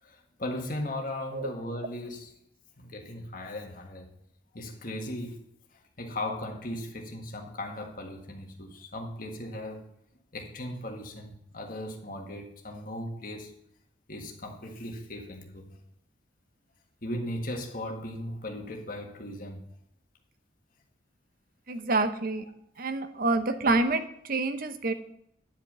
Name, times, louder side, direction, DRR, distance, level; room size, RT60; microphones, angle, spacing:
voice 1, 0.0-2.3 2.8-4.1 4.5-5.4 6.0-9.8 10.3-13.5 14.1-15.7 17.0-19.6, left 1 dB, 50° left, 1 dB, 1.6 m, -37 dB
voice 2, 21.7-22.4 22.8-24.9, right 3 dB, 50° right, 10 dB, 0.8 m, -27 dB
10.0 x 5.2 x 7.3 m, 0.71 s
head